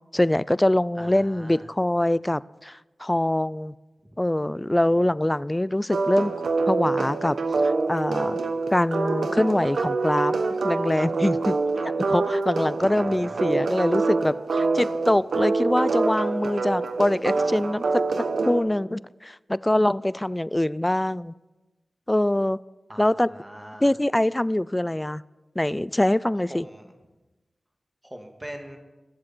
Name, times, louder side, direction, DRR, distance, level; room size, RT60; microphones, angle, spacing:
voice 1, 0.1-3.7 4.2-6.3 6.7-7.4 7.6-8.4 8.7-10.4 10.6-11.6 11.8-17.8 18.4-21.3 22.1-22.6 23.0-23.3 23.8-25.2 25.6-26.7, left 1 dB, 20° left, 0.4 m, -24 dB
voice 2, 1.0-1.7 4.8-5.0 12.8-13.6 22.9-23.9 26.5-26.9 28.0-28.8, equal, 15° right, 2.2 m, -42 dB
sound 1, 5.9-18.6, right 3 dB, 85° right, 1.1 m, -25 dB
22.0 x 7.7 x 4.4 m
cardioid pair, 45°, 0 cm